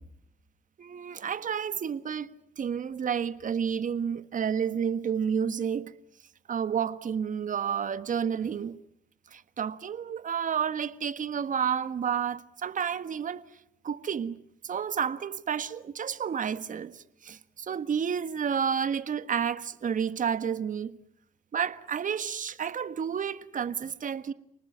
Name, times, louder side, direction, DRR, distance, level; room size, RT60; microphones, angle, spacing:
voice 1, 0.8-2.3 2.6-5.9 6.5-8.8 9.3-13.4 13.8-14.4 14.6-21.0 21.5-24.3, right 7 dB, 45° right, 1.5 m, -30 dB
29.0 x 19.5 x 9.3 m
hypercardioid pair, 55°, 18 cm